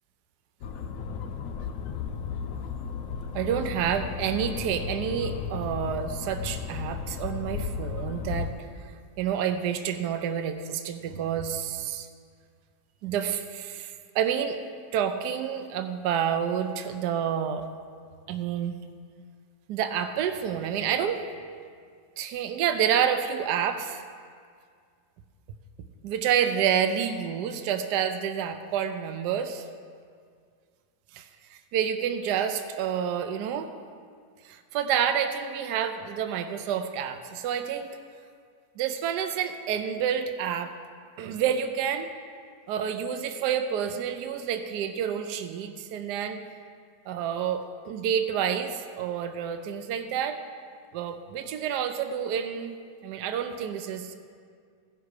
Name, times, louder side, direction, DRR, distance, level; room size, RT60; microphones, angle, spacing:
sound 1, 0.6-8.5, left 6 dB, 85° left, 0.7 m, -34 dB
voice 1, 3.3-8.5 9.2-12.1 13.0-14.6 14.9-17.7 18.3-18.8 19.7-21.2 22.2-24.0 26.0-29.6 31.1-33.7 34.5-38.0 38.8-40.7 41.2-42.1 42.7-46.4 47.1-50.4 50.9-52.7 53.0-54.2, right 8 dB, 75° right, 8 dB, 1.0 m, -29 dB
15.0 x 5.8 x 4.8 m, 2.1 s
omnidirectional pair, 2.1 m